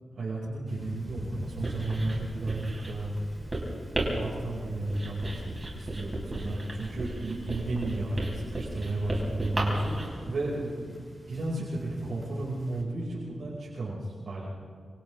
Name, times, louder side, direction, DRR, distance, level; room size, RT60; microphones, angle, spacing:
voice 1, 0.2-3.1 4.0-5.4 5.7-10.9 11.3-14.5, right 2 dB, 70° right, -8 dB, 5.7 m, -33 dB
sound 1, 0.7-12.8, equal, ahead, 4.3 m, -45 dB
Writing, 1.4-10.1, right 1 dB, 25° right, 5.2 m, -35 dB
27.5 x 26.5 x 3.6 m, 2.2 s
wide cardioid pair, 170°, 0 cm